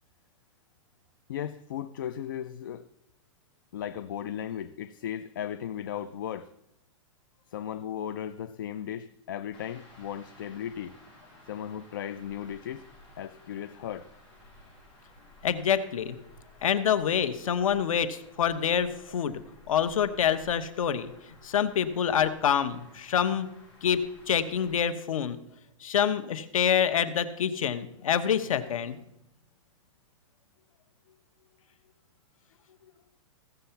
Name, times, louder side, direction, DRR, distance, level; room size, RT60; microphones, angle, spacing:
voice 1, 1.3-2.8 3.7-6.5 7.5-10.9 11.5-12.8 13.2-14.1, left 10 dB, 40° left, 12 dB, 0.4 m, -36 dB
sound 1, 9.5-24.7, left 1 dB, 5° left, 4.9 m, -55 dB
voice 2, 15.4-16.2 16.6-19.3 19.7-21.1 21.4-23.5 23.8-25.4 25.8-29.0, left 8 dB, 80° left, 11 dB, 1.0 m, -26 dB
15.5 x 6.9 x 5.7 m, 0.82 s
hypercardioid pair, 175°, 17 cm